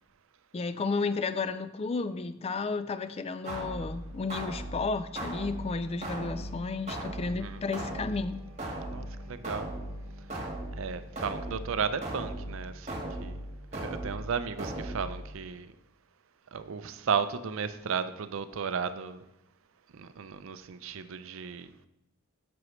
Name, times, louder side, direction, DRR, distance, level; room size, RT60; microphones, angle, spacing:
voice 1, 0.5-8.4, left 4 dB, 30° left, 0.3 m, -32 dB
sound 1, 3.4-15.4, right 1 dB, 30° right, 1.4 m, -38 dB
sound 2, 5.2-11.8, left 4 dB, 10° right, 1.1 m, -52 dB
voice 2, 7.2-7.6 8.9-9.7 10.7-13.4 13.7-15.7 16.5-19.2 19.9-21.7, right 6 dB, 60° right, 0.5 m, -34 dB
7.8 x 7.0 x 3.1 m
head